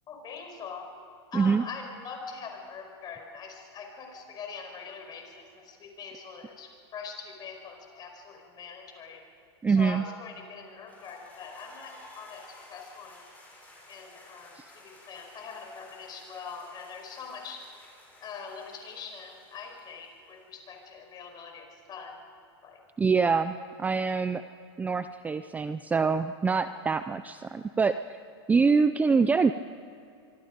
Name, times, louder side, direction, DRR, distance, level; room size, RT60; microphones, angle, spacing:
voice 1, 0.1-0.9 1.3-9.3 9.7-13.3 13.9-17.7 18.2-22.2 22.6-22.9 26.6-26.8 28.6-28.8, left 5 dB, 30° left, 3 dB, 5.2 m, -43 dB
voice 2, 9.6-10.0 14.6-14.7 23.0-24.4 24.8-28.0 28.5-29.5, right 5 dB, 10° right, 11 dB, 0.5 m, -25 dB
sound 1, 10.9-20.6, left 2 dB, 10° left, 7.5 m, -53 dB
25.0 x 24.5 x 5.2 m, 2.6 s
supercardioid pair, 130°, 14 cm